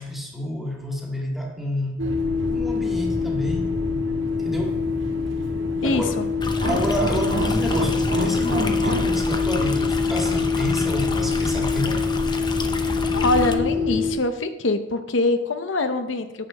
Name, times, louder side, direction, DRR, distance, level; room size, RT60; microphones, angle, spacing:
voice 1, 0.0-2.0 2.5-3.8 4.4-4.9 5.8-6.3 6.7-12.1, left 1 dB, ahead, -1 dB, 2.0 m, -29 dB
sound 1, 2.0-14.1, left 4 dB, 85° right, 1.7 m, -24 dB
voice 2, 5.8-6.3 13.1-16.3, left 2 dB, 90° left, 9 dB, 0.8 m, -23 dB
Stream, 6.4-13.5, left 2 dB, 25° left, 0.8 m, -29 dB
9.3 x 5.3 x 7.3 m, 0.98 s
head